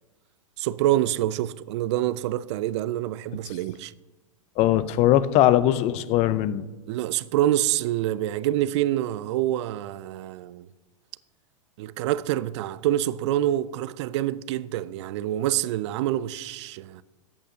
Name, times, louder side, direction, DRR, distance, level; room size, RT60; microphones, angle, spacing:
voice 1, 0.6-3.9 6.9-10.7 11.8-17.0, right 13 dB, 55° right, 0.4 m, -26 dB
voice 2, 4.6-6.6, left 13 dB, 40° left, 0.5 m, -20 dB
13.5 x 8.2 x 2.8 m
hypercardioid pair, 105°, 18 cm